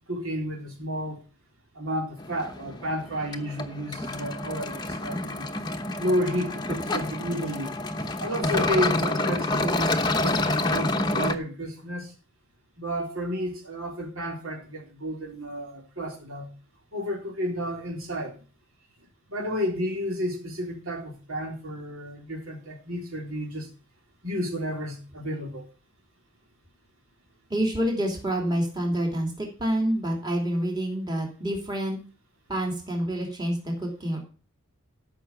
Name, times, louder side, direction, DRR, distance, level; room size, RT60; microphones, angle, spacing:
voice 1, 0.1-1.2 1.7-5.5 6.0-7.8 8.2-12.1 12.8-16.5 16.9-18.4 19.3-23.7 24.2-25.7, equal, 70° right, 3.4 m, -31 dB
sound 1, 2.2-11.4, left 2 dB, 20° left, 0.9 m, -28 dB
voice 2, 27.5-32.0 32.5-34.2, right 1 dB, 20° right, 3.0 m, -27 dB
13.5 x 5.8 x 7.1 m
head